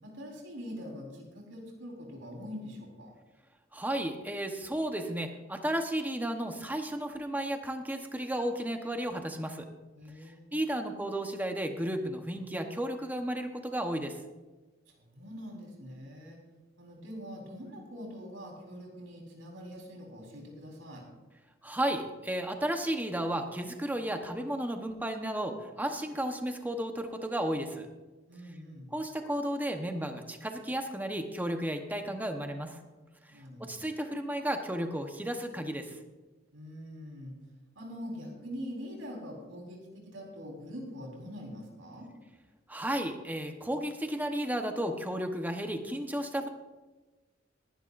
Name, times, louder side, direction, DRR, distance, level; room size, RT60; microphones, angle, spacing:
voice 1, 0.0-3.1 10.0-10.5 14.9-16.4 16.8-21.0 28.3-28.9 33.3-33.9 36.5-37.4 37.7-42.1, equal, 85° right, -1 dB, 4.1 m, -44 dB
voice 2, 3.7-9.7 10.2-14.2 21.6-27.9 28.9-32.8 33.2-33.3 33.6-36.0 42.7-46.5, right 1 dB, 10° right, 5 dB, 1.0 m, -33 dB
21.0 x 11.0 x 2.6 m, 1.2 s
head